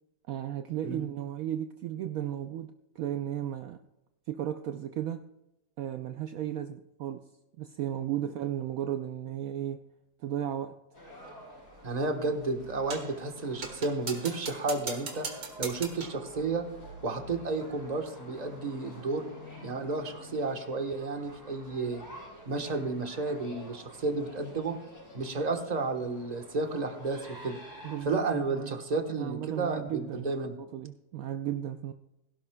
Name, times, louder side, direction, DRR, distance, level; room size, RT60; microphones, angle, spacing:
voice 1, 0.3-3.8 4.3-5.2 5.8-7.3 7.6-9.8 10.2-10.8 27.8-28.8 29.2-30.3 30.6-31.9, right 11 dB, 75° right, 7 dB, 0.8 m, -35 dB
sound 1, 10.9-28.1, equal, 55° left, 6.0 m, -49 dB
voice 2, 11.8-15.3 15.6-16.6 17.0-19.3 19.6-22.0 22.4-24.7 25.1-27.6 28.0-30.5, right 3 dB, 25° right, 5 dB, 1.1 m, -32 dB
sound 2, 12.9-13.2 13.6-16.2, right 4 dB, 50° right, 2.0 m, -39 dB
17.0 x 16.5 x 2.3 m, 0.92 s
omnidirectional pair, 2.0 m